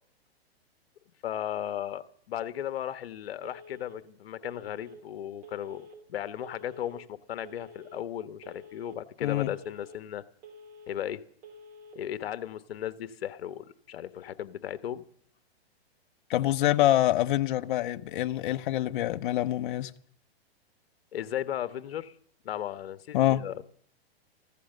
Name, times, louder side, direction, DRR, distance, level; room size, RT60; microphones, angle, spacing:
voice 1, 1.2-10.2 10.9-11.2 11.9-15.0 21.1-22.1 22.4-23.7, left 11 dB, 70° left, 1.2 m, -36 dB
Telephone, 3.4-4.0 4.4-5.0 5.4-6.0 6.4-7.0 7.4-8.0 8.4-9.0 9.4-10.0 10.4-11.0 11.4-12.0, left 1 dB, 30° right, 3.2 m, -49 dB
voice 2, 9.2-9.5 16.3-19.9 23.1-23.4, left 14 dB, 55° left, 0.9 m, -26 dB
14.5 x 14.5 x 6.7 m
hypercardioid pair, 150°, 31 cm